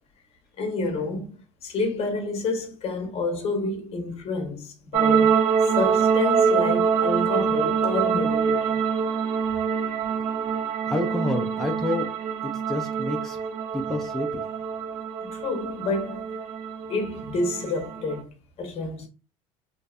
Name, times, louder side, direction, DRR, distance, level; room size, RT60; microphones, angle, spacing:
voice 1, 0.6-5.4 5.8-8.8 15.2-16.3 16.9-19.1, left 3 dB, 45° left, 0.7 m, -29 dB
sound 1, 4.9-18.2, right 6 dB, 70° right, 0.4 m, -25 dB
voice 2, 10.9-12.1 12.4-13.4 13.7-14.4, left 1 dB, ahead, 0.3 m, -29 dB
2.6 x 2.1 x 2.3 m
cardioid pair, 125°, 15 cm